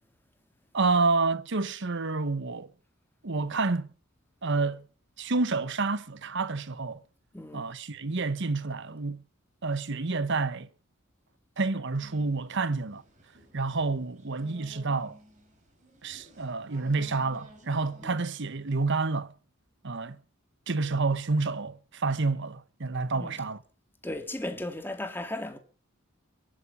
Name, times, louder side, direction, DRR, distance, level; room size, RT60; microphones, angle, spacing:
voice 1, 0.7-2.7 3.2-3.9 4.4-4.9 5.2-7.0 7.5-9.2 9.6-10.7 11.6-13.0 13.5-15.2 16.0-19.3 19.8-20.2 20.7-23.6, right 3 dB, 55° right, 1.0 m, -29 dB
voice 2, 7.3-7.7 18.0-18.1 23.1-23.3 24.0-25.6, left 1 dB, 10° left, 2.1 m, -36 dB
sound 1, 12.0-18.3, equal, 35° right, 4.7 m, -54 dB
23.0 x 8.7 x 5.5 m
head